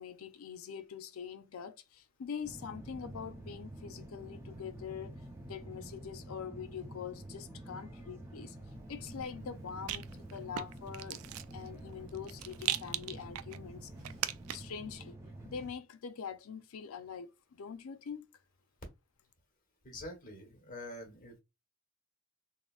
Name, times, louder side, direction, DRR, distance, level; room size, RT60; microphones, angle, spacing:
voice 1, 0.0-5.2 5.5-8.6 8.9-10.0 10.3-13.9 14.5-15.2 15.4-18.2, left 7 dB, 90° left, 0.5 m, -44 dB
sound 1, 2.4-15.7, right 1 dB, 15° right, 0.5 m, -48 dB
Rattle, 8.7-14.8, right 12 dB, 85° right, 0.3 m, -41 dB
voice 2, 19.8-21.4, left 1 dB, 40° left, 1.2 m, -46 dB
3.8 x 2.0 x 2.3 m
head